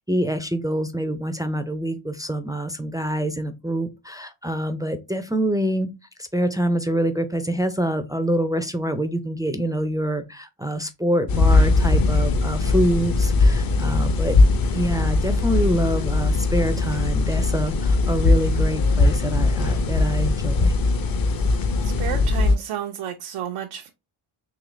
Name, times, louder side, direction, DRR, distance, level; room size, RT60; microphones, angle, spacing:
voice 1, 0.0-5.9 6.2-14.4 14.7-20.7, right 1 dB, 10° right, 0.3 m, -26 dB
sound 1, 11.3-22.6, left 3 dB, 45° left, 0.6 m, -20 dB
voice 2, 21.8-23.9, right 10 dB, 90° right, 0.7 m, -31 dB
3.9 x 2.8 x 3.1 m
cardioid pair, 90°, 50 cm